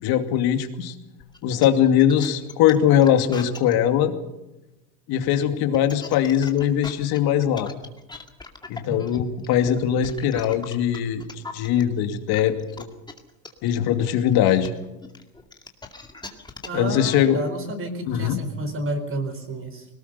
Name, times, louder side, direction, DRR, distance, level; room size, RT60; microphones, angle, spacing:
voice 1, 0.0-0.9 1.4-4.2 5.1-7.7 8.7-12.9 13.6-14.7 16.7-17.4 18.1-18.4, left 10 dB, 55° left, 7 dB, 2.6 m, -21 dB
sound 1, 1.2-3.7 5.6-11.8 12.3-16.9, left 3 dB, 10° left, 2.3 m, -40 dB
voice 2, 16.6-19.9, right 1 dB, 30° right, 7 dB, 4.4 m, -31 dB
21.5 x 19.0 x 6.8 m, 0.99 s
supercardioid pair, 110°, 45 cm